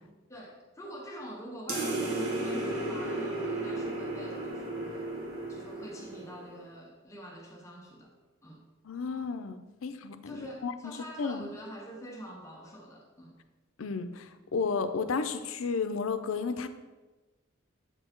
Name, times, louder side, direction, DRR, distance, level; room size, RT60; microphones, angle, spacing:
voice 1, 0.3-5.1 5.5-8.1 8.4-8.6 10.2-13.4, equal, 15° left, -1 dB, 0.9 m, -45 dB
sound 1, 1.7-6.6, right 2 dB, 85° right, 1.6 m, -34 dB
voice 2, 8.8-10.7 11.2-11.5 13.8-16.7, left 5 dB, 90° left, 10 dB, 0.5 m, -32 dB
7.7 x 4.6 x 4.4 m, 1.2 s
head